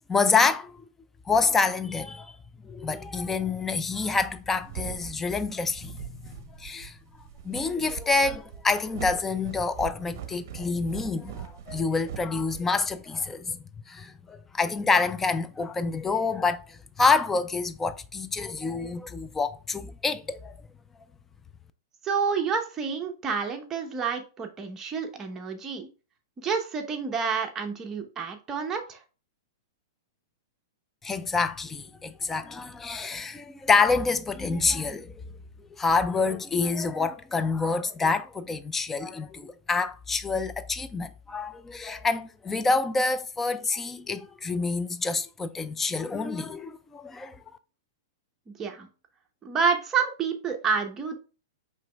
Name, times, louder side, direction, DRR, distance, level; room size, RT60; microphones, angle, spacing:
voice 1, 0.1-0.8 1.3-2.4 2.6-6.3 6.6-7.0 7.4-13.6 13.9-20.5 31.0-35.1 35.8-47.4, left 4 dB, 10° left, 0.4 m, -27 dB
sound 1, 4.6-13.2, right 9 dB, 60° right, 0.7 m, -41 dB
voice 2, 22.0-25.9 26.4-29.0 48.5-48.9 49.4-51.1, right 5 dB, 20° right, 0.9 m, -29 dB
4.9 x 3.2 x 3.4 m
hypercardioid pair, 135°, 2 cm